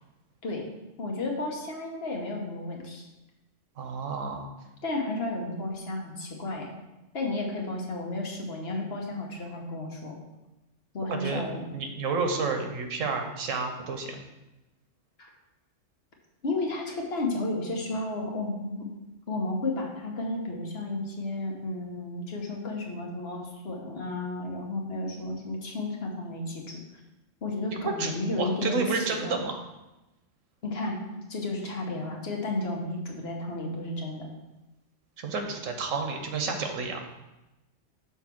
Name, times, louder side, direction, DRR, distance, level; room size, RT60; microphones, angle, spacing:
voice 1, 1.0-3.1 4.8-6.7 7.1-10.2 10.9-11.6 15.2-15.3 16.4-18.9 19.3-26.8 27.4-29.4 30.6-31.0 31.3-34.3, left 2 dB, 55° left, 0 dB, 1.3 m, -32 dB
voice 2, 3.8-4.5 11.1-11.4 11.7-14.2 28.0-29.6 35.2-37.0, right 4 dB, 85° right, 4 dB, 1.2 m, -30 dB
6.2 x 3.7 x 5.9 m, 1.0 s
omnidirectional pair, 1.3 m